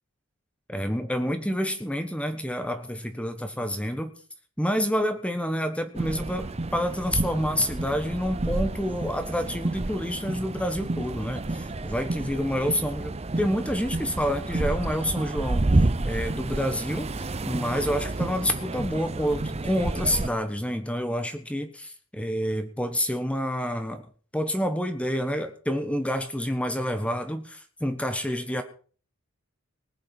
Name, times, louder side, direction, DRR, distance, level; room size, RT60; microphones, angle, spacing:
voice 1, 0.7-4.1 4.6-15.7 16.0-24.0 24.3-28.6, equal, 5° left, 8 dB, 1.3 m, -28 dB
sound 1, 6.0-20.3, right 2 dB, 30° right, 0.7 m, -29 dB
19.5 x 8.6 x 6.1 m, 0.42 s
head